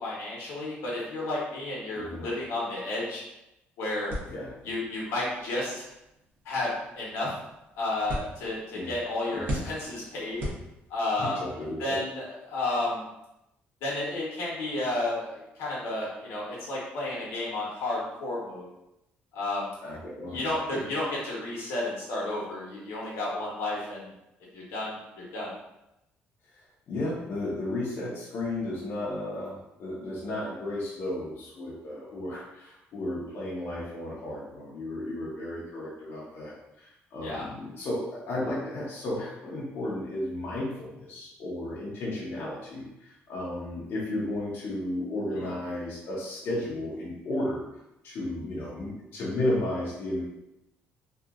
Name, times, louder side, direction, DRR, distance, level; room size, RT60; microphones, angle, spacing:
voice 1, 0.0-3.2 3.8-4.1 4.6-5.8 6.4-7.3 7.8-10.5 10.9-13.0 13.8-18.7 19.3-19.7 20.2-24.1 24.5-25.5 37.2-37.4 45.4-45.5, left 2 dB, 85° left, -5 dB, 1.0 m, -32 dB
voice 2, 1.9-2.3 4.3-4.5 8.7-8.9 9.3-9.6 11.2-12.0 19.8-20.8 26.5-26.6 26.9-47.6 48.0-50.2, left 1 dB, 60° left, -6 dB, 0.8 m, -34 dB
sound 1, 4.1-11.2, equal, 55° right, 0.9 m, -40 dB
2.8 x 2.5 x 2.4 m, 0.88 s
cardioid pair, 110°, 4 cm